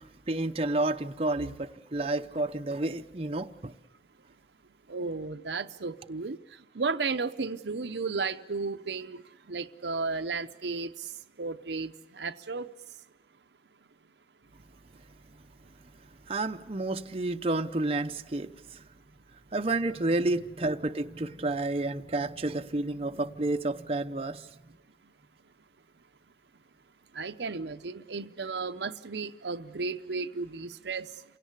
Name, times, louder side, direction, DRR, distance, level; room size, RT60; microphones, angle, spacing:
voice 1, 0.0-3.7 16.3-18.8 19.5-24.5, right 2 dB, 35° right, 0.7 m, -30 dB
voice 2, 4.9-12.7 27.1-31.2, right 4 dB, 70° right, 0.8 m, -34 dB
28.0 x 17.5 x 8.2 m
head